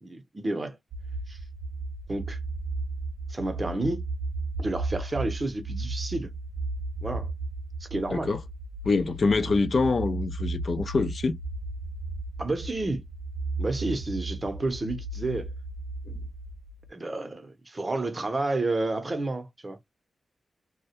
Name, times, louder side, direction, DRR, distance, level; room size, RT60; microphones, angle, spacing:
voice 1, 0.0-0.8 1.3-1.4 2.1-2.4 3.3-4.0 4.6-6.3 7.0-7.3 7.8-8.4 12.4-13.0 13.6-15.5 16.9-19.9, right 2 dB, 30° right, 0.7 m, -30 dB
sound 1, 0.9-16.9, right 2 dB, 75° right, 0.4 m, -35 dB
voice 2, 8.8-11.4 16.1-16.2, left 4 dB, 55° left, 0.4 m, -25 dB
2.2 x 2.1 x 2.8 m
cardioid pair, 70°, 0 cm